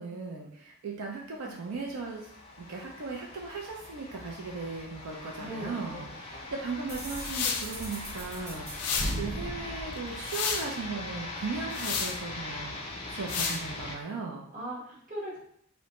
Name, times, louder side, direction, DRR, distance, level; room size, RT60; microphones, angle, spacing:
voice 1, 0.0-2.3 2.6-12.8 13.1-14.4, right 4 dB, 80° right, -1 dB, 0.4 m, -37 dB
sound 1, 1.4-13.9, left 2 dB, 25° left, 0.4 m, -42 dB
voice 2, 5.4-6.0 6.3-6.5 14.5-15.4, right 1 dB, 35° right, -5 dB, 0.9 m, -40 dB
sound 2, 6.9-10.7, equal, 10° right, 0.7 m, -38 dB
sound 3, 7.2-7.7 8.7-9.2 9.9-10.7 11.7-12.2 13.3-13.6, left 6 dB, 90° left, 0.4 m, -31 dB
2.5 x 2.1 x 2.9 m, 0.65 s
head